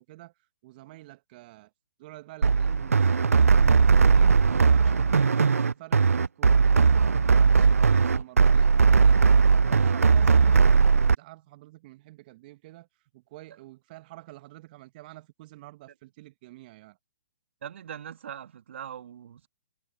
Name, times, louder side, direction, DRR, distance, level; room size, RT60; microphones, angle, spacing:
voice 1, 0.0-1.7 2.0-9.2 9.7-17.0, right 18 dB, 40° right, 1.4 m, -48 dB
sound 1, 2.4-11.1, right 5 dB, 80° right, 0.4 m, -19 dB
voice 2, 17.6-19.5, right 9 dB, 55° right, 1.8 m, -41 dB
figure-of-eight pair, 125°, 8 cm